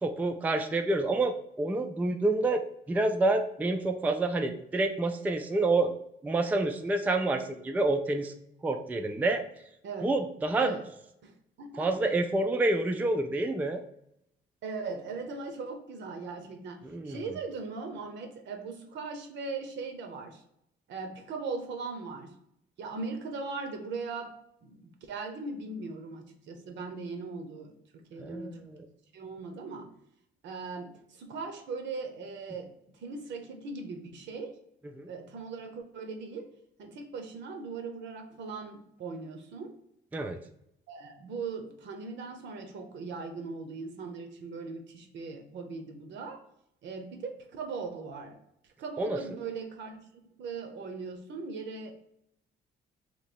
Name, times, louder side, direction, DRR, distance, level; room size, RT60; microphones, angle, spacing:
voice 1, 0.0-5.9 6.2-8.3 8.6-9.4 10.0-10.7 11.8-13.8 16.8-17.2 28.2-28.8 35.0-35.1 40.1-40.4 49.0-49.2, right 2 dB, 10° right, 5 dB, 0.3 m, -28 dB
voice 2, 10.6-10.9 11.2-12.0 14.6-20.4 20.9-22.4 22.8-24.3 24.6-28.7 29.1-30.0 30.4-34.6 35.1-39.8 40.9-46.5 46.8-50.0 50.4-51.9, right 4 dB, 70° right, 5 dB, 0.8 m, -39 dB
3.1 x 2.9 x 4.2 m, 0.76 s
cardioid pair, 120°, 19 cm